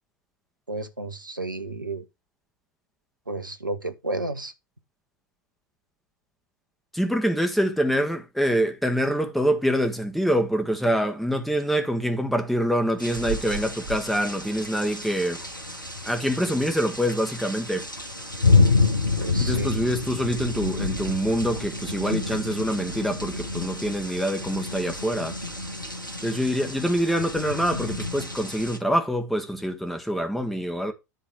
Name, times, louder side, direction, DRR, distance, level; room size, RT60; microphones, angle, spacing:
voice 1, 0.7-2.1 3.3-4.5 19.2-19.8, right 2 dB, 85° right, 1.2 m, -32 dB
voice 2, 6.9-15.4 16.0-17.9 19.4-25.4 26.2-30.9, equal, ahead, 1.6 m, -25 dB
sound 1, 13.0-28.8, left 3 dB, 90° left, 1.5 m, -28 dB
10.5 x 3.8 x 6.2 m
figure-of-eight pair, 90°, 10 cm